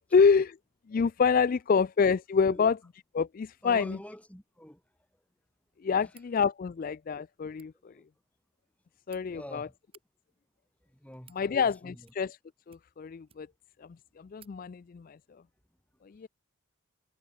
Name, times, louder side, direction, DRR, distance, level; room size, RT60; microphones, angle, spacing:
voice 1, 0.1-0.6 0.9-2.8 3.1-4.0 5.8-7.9 9.1-9.7 11.3-12.4 12.7-13.5 13.8-15.2 16.0-16.3, left 5 dB, 40° left, 0.3 m, -27 dB
voice 2, 3.6-4.8 6.0-6.1 7.9-8.0 9.3-9.7 11.0-12.1, equal, 5° left, 4.1 m, -46 dB
sound 1, 6.1-6.3 7.4-7.7 8.7-9.2 9.8-10.1 10.8-11.4 12.0-12.4 12.7-13.6 14.0-14.1 14.4-14.6, right 9 dB, 25° right, 7.0 m, -60 dB
head